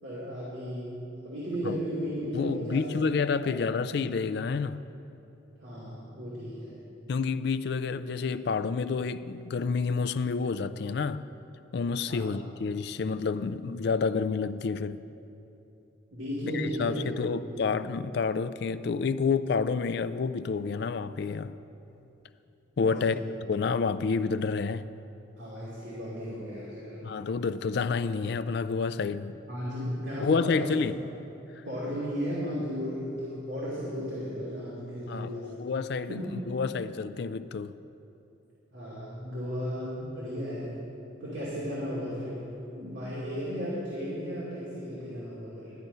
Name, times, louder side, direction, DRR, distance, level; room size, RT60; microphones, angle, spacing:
voice 1, 0.0-1.0 1.2-2.8 3.4-3.7 5.6-6.8 12.1-12.3 16.1-17.6 22.8-23.1 25.4-27.0 29.5-30.7 31.6-35.6 36.1-36.5 38.7-40.8 41.2-42.5 42.7-45.7, equal, 75° right, 2.6 m, -35 dB
voice 2, 2.3-4.8 7.1-11.3 11.7-15.0 16.5-21.6 22.8-23.2 23.5-24.9 27.0-29.3 30.2-30.9 35.1-37.7, left 5 dB, 55° left, 0.3 m, -29 dB
13.0 x 9.1 x 5.5 m
head